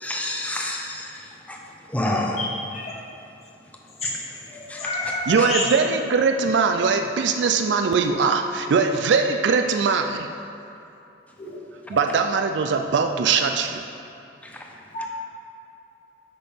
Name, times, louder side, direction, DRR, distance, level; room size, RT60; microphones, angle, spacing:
voice 1, 0.0-1.6 1.9-2.4 4.7-4.8 14.4-14.5, left 1 dB, 10° left, 0 dB, 0.7 m, -28 dB
voice 2, 2.4-2.9 4.0-4.1 4.5-5.6 11.4-11.6 11.9-12.2 14.9-15.1, left 2 dB, 40° left, -5 dB, 1.5 m, -29 dB
voice 3, 5.3-10.3 11.9-13.8, right 5 dB, 85° right, 6 dB, 0.4 m, -21 dB
8.9 x 5.8 x 3.6 m, 2.8 s
head